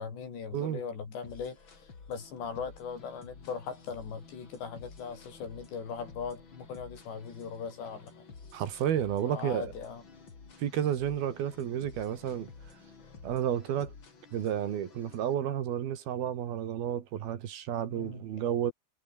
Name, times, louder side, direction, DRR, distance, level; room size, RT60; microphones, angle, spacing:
voice 1, 0.0-1.6 2.1-8.3 9.2-10.0 17.9-18.2, left 6 dB, 85° left, 7.4 m, -39 dB
sound 1, 1.2-15.3, left 4 dB, 30° left, 3.5 m, -52 dB
voice 2, 8.5-9.7 10.6-12.5 13.2-13.9 14.3-18.7, right 10 dB, 65° right, 3.7 m, -31 dB
omnidirectional pair, 4.9 m